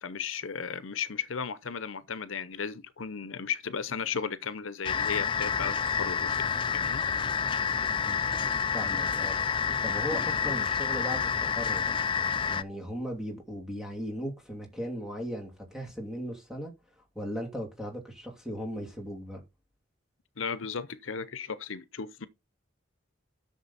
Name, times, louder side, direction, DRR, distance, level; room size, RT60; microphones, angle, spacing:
voice 1, 0.0-7.0 20.4-22.3, left 6 dB, 80° left, 0.8 m, -35 dB
sound 1, 4.8-12.6, left 6 dB, 25° left, 0.4 m, -29 dB
voice 2, 8.7-9.4 9.8-11.9 12.5-16.7 17.1-19.4, equal, 5° right, 2.8 m, -37 dB
11.0 x 6.6 x 4.1 m
head